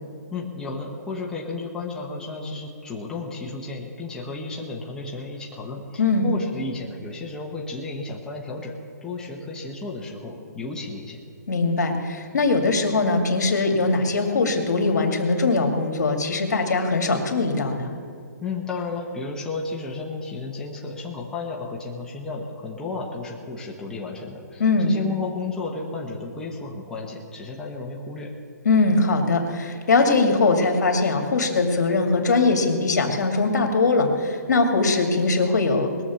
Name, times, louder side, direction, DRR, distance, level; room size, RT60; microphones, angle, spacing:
voice 1, 0.3-11.2 18.4-28.3, left 3 dB, 5° left, -2 dB, 1.2 m, -33 dB
voice 2, 11.5-17.9 24.6-24.9 28.6-35.9, left 3 dB, 70° left, 4 dB, 2.4 m, -21 dB
21.0 x 7.2 x 7.1 m, 2.4 s
hypercardioid pair, 155°, 9 cm